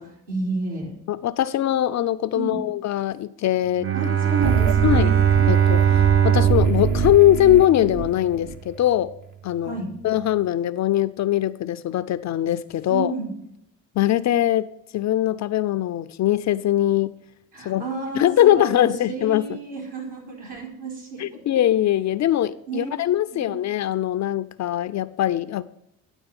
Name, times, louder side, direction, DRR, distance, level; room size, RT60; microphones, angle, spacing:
voice 1, 0.0-0.9 2.3-2.6 3.9-5.2 9.6-9.9 12.9-13.3 17.5-21.2 22.7-22.9 23.3-23.6, right 3 dB, 70° right, -3 dB, 3.8 m, -31 dB
voice 2, 1.1-3.9 4.8-5.1 5.5-9.1 9.4-9.7 10.0-13.1 14.0-14.7 14.9-17.1 17.6-17.8 18.1-19.5 21.2-25.6, left 12 dB, 45° left, 14 dB, 0.5 m, -21 dB
Bowed string instrument, 3.8-8.2, right 9 dB, 30° right, 0.6 m, -20 dB
sound 1, 4.4-8.5, right 6 dB, 50° right, 1.1 m, -26 dB
9.8 x 4.3 x 6.8 m, 0.77 s
hypercardioid pair, 60°, 41 cm